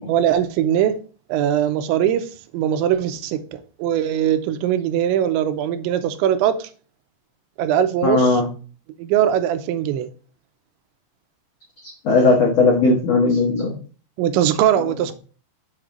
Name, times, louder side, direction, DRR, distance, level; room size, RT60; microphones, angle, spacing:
voice 1, 0.0-1.0 1.3-6.7 7.6-8.4 9.0-10.1 14.2-15.1, right 10 dB, 85° right, 2.9 m, -21 dB
voice 2, 8.0-8.5 11.8-13.8, left 3 dB, 85° left, 1.4 m, -17 dB
7.5 x 5.0 x 3.7 m
omnidirectional pair, 5.3 m